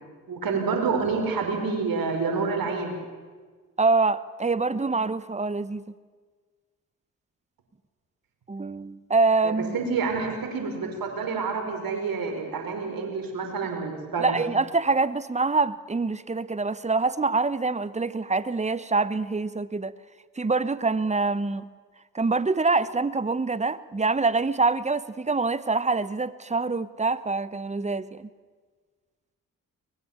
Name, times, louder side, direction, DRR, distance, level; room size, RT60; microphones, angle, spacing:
voice 1, 0.3-3.0 9.4-14.4, right 4 dB, 55° right, 3 dB, 5.2 m, -28 dB
voice 2, 3.8-5.9 8.5-9.8 14.2-19.9 20.4-21.7 22.1-28.3, right 3 dB, 15° right, 17 dB, 1.1 m, -25 dB
23.5 x 20.0 x 7.4 m, 1.5 s
hypercardioid pair, 40°, 40 cm